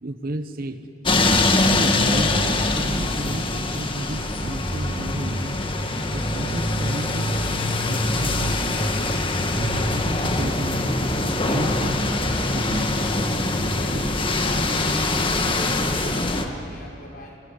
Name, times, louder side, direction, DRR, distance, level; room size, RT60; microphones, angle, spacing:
voice 1, 0.0-0.9 1.7-5.6 6.1-9.1 9.5-12.0 12.5-13.3 13.9-14.1, right 1 dB, 50° right, 9 dB, 1.0 m, -33 dB
sound 1, 1.0-16.5, left 2 dB, 30° left, 1.6 m, -23 dB
voice 2, 13.6-15.3 16.1-17.4, left 1 dB, 50° left, -1 dB, 5.7 m, -40 dB
28.5 x 19.0 x 9.8 m, 2.7 s
head